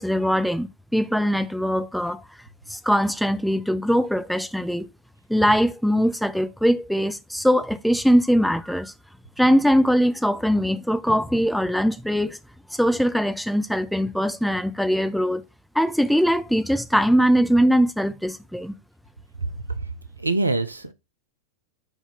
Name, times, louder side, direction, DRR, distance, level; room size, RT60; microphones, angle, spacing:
voice 1, 0.0-2.2 2.7-4.9 5.3-8.9 9.4-12.4 12.8-15.4 15.8-18.7, equal, ahead, 0.3 m, -21 dB
voice 2, 19.4-19.9 20.2-20.9, right 2 dB, 80° right, 0.5 m, -25 dB
4.7 x 2.7 x 3.4 m
figure-of-eight pair, 90°, 0 cm